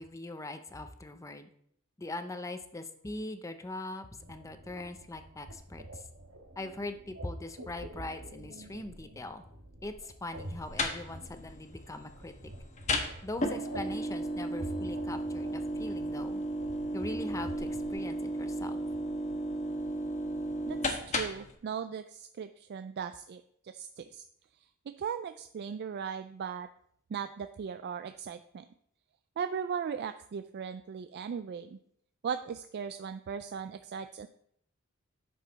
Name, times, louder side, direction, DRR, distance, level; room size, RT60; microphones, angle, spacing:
voice 1, 0.0-1.5 2.0-6.0 6.6-9.4 9.8-12.3 13.2-16.4 16.9-18.8, left 2 dB, 15° left, 9 dB, 0.5 m, -41 dB
sound 1, 4.2-17.9, right 1 dB, 70° right, 1.3 m, -48 dB
sound 2, 10.4-21.5, equal, 35° left, 1.0 m, -35 dB
voice 2, 20.7-24.2 25.0-26.7 27.1-28.7 29.4-31.8 32.2-34.3, right 7 dB, 50° right, 9 dB, 0.3 m, -38 dB
8.3 x 6.2 x 4.0 m, 0.69 s
head